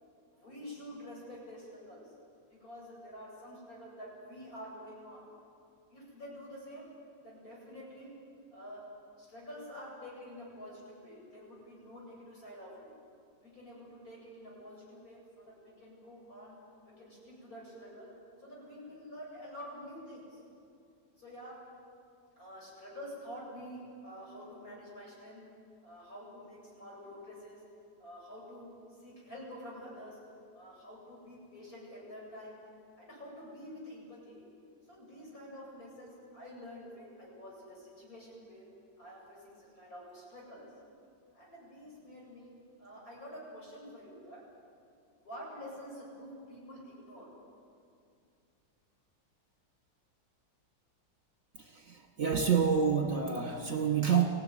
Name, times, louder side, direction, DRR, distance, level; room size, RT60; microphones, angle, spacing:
voice 1, 0.3-2.0 2.5-5.3 5.9-6.9 7.2-8.1 8.5-12.9 13.4-16.6 16.8-18.1 18.4-20.4 21.2-21.6 22.4-25.4 25.8-27.6 28.0-28.8 29.0-30.2 30.5-32.6 33.0-34.4 34.9-38.7 39.0-40.7 41.3-42.5 42.8-44.4 45.2-47.3, equal, 50° left, -4 dB, 8.5 m, -48 dB
voice 2, 51.7-54.3, right 6 dB, 45° right, 3 dB, 2.0 m, -28 dB
24.5 x 17.0 x 10.0 m, 2.4 s
omnidirectional pair, 2.0 m